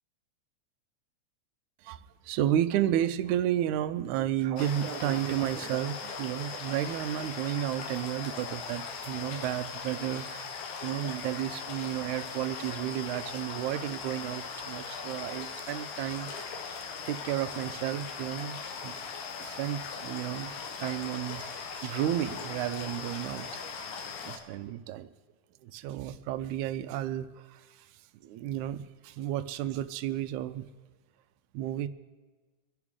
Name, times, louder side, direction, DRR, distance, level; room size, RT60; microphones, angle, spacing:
voice 1, 1.8-10.5 10.8-16.5 17.1-19.0 19.4-20.5 20.8-23.6 24.2-25.1 25.6-27.9 28.2-30.7 31.5-31.9, right 12 dB, 90° right, 12 dB, 2.0 m, -32 dB
sound 1, 4.6-24.4, left 5 dB, 80° left, 2.5 m, -39 dB
23.5 x 11.0 x 3.6 m, 1.3 s
omnidirectional pair, 3.3 m